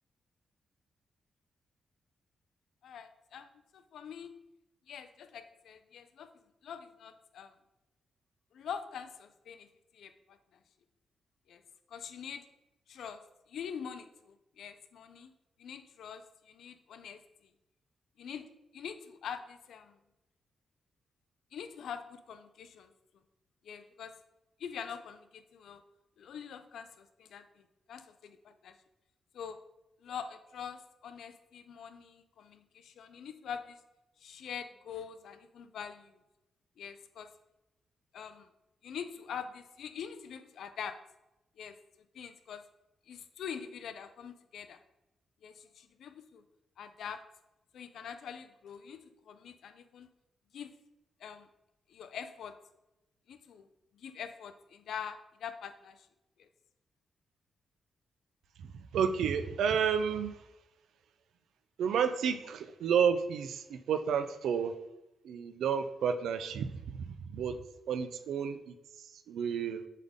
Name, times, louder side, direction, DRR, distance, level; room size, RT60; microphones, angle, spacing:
voice 1, 2.8-3.5 3.7-4.3 4.9-6.3 6.6-7.5 8.5-9.7 9.9-10.4 11.5-11.6 11.9-12.4 12.9-13.2 13.5-15.3 15.6-17.5 18.2-18.5 18.7-20.0 21.5-23.2 23.6-24.2 24.6-25.8 26.2-28.8 29.3-29.6 30.0-33.8 34.2-36.2 36.8-37.3 38.1-38.5 38.8-41.0 41.6-41.8 42.1-42.6 43.1-44.8 45.4-46.4 46.8-47.2 47.7-50.1 50.5-50.7 51.2-51.5 51.9-52.6 53.3-53.7 53.9-56.1 56.4-56.5, left 7 dB, 75° left, 10 dB, 0.5 m, -44 dB
voice 2, 58.6-60.3 61.8-64.7 65.2-67.6 67.9-68.7 69.3-69.8, right 7 dB, 90° right, 10 dB, 0.5 m, -31 dB
7.5 x 3.7 x 3.6 m, 0.93 s
cardioid pair, 115°, 0 cm